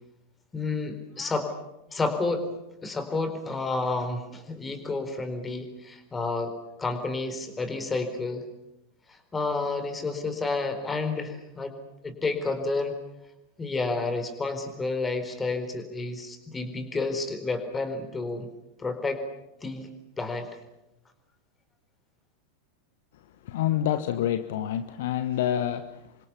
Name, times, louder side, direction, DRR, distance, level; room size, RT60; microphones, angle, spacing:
voice 1, 0.5-1.5 1.9-2.5 2.8-6.5 6.8-8.5 9.1-11.7 12.0-12.9 13.6-18.5 18.8-19.2 19.6-19.9 20.2-20.5, left 3 dB, 15° left, 8 dB, 4.2 m, -30 dB
voice 2, 23.4-26.3, left 11 dB, 55° left, 11 dB, 1.2 m, -28 dB
28.5 x 25.0 x 7.1 m, 0.90 s
figure-of-eight pair, 90°, 0 cm